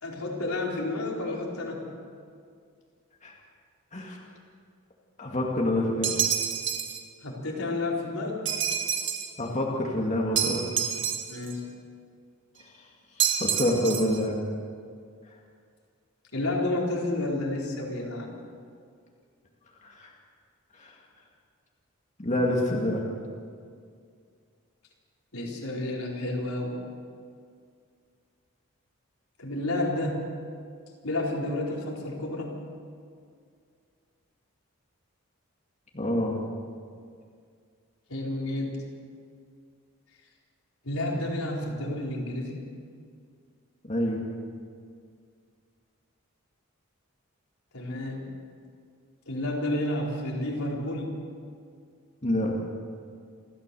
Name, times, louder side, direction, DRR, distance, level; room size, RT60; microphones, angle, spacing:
voice 1, 0.0-1.9 7.2-8.4 11.3-11.6 16.3-18.3 25.3-26.8 29.4-30.2 31.0-32.6 38.1-38.8 40.8-42.8 47.7-48.3 49.3-51.2, left 1 dB, 80° left, -2 dB, 4.3 m, -30 dB
voice 2, 5.2-6.2 9.4-10.7 12.6-12.7 13.4-14.4 19.8-20.1 20.7-21.0 22.2-23.0 35.9-36.4 43.8-44.2 52.2-52.6, left 1 dB, 30° left, -2 dB, 2.1 m, -27 dB
sound 1, 6.0-7.0 8.5-9.3 10.4-11.5 13.2-14.2, right 8 dB, 55° right, 1.9 m, -28 dB
29.0 x 13.0 x 7.0 m, 2.2 s
head